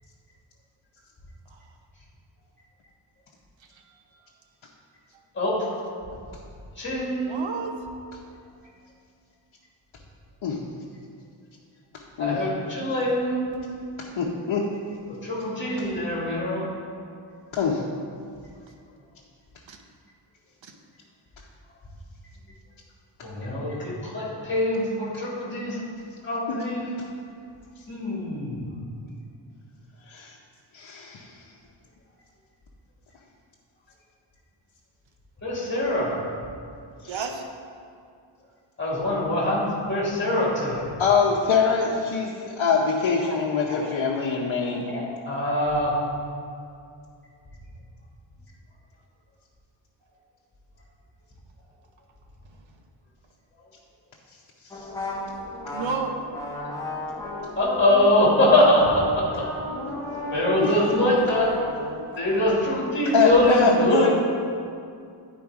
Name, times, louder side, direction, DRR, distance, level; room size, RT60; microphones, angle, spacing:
voice 1, 3.7-4.0 7.3-7.8 19.7-19.8 20.6-20.7 37.1-37.4 55.7-56.2 61.6-62.5, right 5 dB, 80° right, 4 dB, 0.9 m, -33 dB
voice 2, 5.3-5.7 6.8-7.5 12.2-13.6 15.2-16.7 23.2-25.8 26.2-26.9 27.9-28.8 35.4-36.2 38.8-40.9 43.2-43.4 44.6-46.0 57.6-59.5 60.3-61.6 62.2-64.1, left 1 dB, 25° left, -5 dB, 2.2 m, -23 dB
voice 3, 14.0-14.7 17.5-17.8 26.5-26.6 30.1-30.3 30.7-31.3 37.0-37.1 41.0-44.9 54.7-54.9 60.6-60.7 63.1-64.1, left 5 dB, 90° left, -3 dB, 0.9 m, -24 dB
sound 1, 54.7-61.7, left 1 dB, 5° left, 0.9 m, -33 dB
10.5 x 4.6 x 4.7 m, 2.4 s
wide cardioid pair, 180°, 46 cm